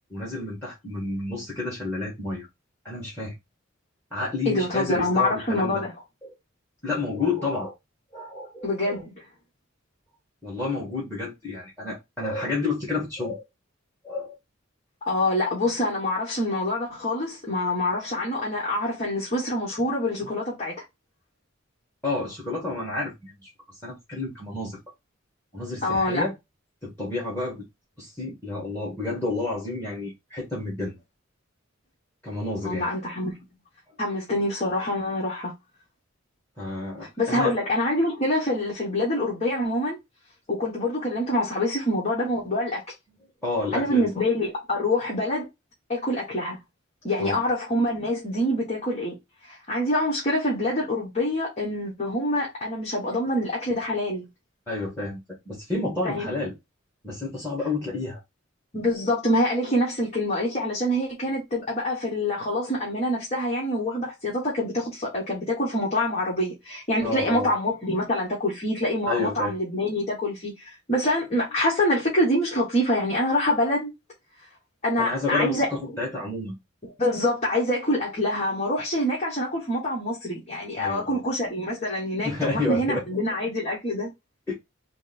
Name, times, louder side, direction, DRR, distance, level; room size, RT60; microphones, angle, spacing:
voice 1, 0.1-2.5 2.8-3.3 4.1-5.8 6.2-6.3 6.8-7.7 8.1-9.0 10.4-13.4 14.0-14.4 22.0-23.5 23.8-24.8 25.5-26.3 26.8-27.6 28.0-31.0 32.2-32.9 36.6-37.5 43.4-44.1 47.2-47.4 53.1-53.2 54.7-56.5 57.0-58.2 67.0-67.5 69.1-69.5 75.0-76.6 80.8-81.2 82.2-83.0 84.5-84.6, left 3 dB, 10° left, 1.9 m, -30 dB
voice 2, 4.4-5.9 8.6-9.1 15.0-20.8 25.8-26.2 32.6-33.4 34.0-35.5 37.0-40.0 40.5-42.8 43.7-45.5 45.9-46.6 47.0-49.1 49.5-54.3 56.0-56.3 58.7-73.9 74.8-75.7 77.0-84.1, left 1 dB, 35° left, 1.6 m, -26 dB
4.4 x 2.3 x 4.3 m
head